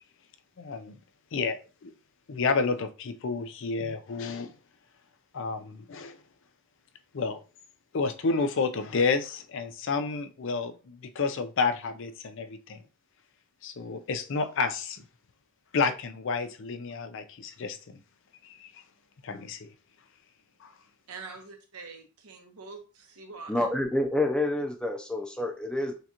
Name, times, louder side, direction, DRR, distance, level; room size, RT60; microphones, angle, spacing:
voice 1, 0.6-1.0 1.3-1.9 2.3-4.5 5.3-6.2 7.1-7.4 7.9-12.8 13.6-15.0 15.7-18.0 18.4-18.7 19.2-19.7 20.6-20.7, left 4 dB, 60° left, 0.5 m, -30 dB
voice 2, 21.1-23.7, right 4 dB, 85° right, 1.1 m, -45 dB
voice 3, 23.5-26.0, left 1 dB, 5° left, 0.5 m, -28 dB
6.5 x 2.4 x 2.9 m
head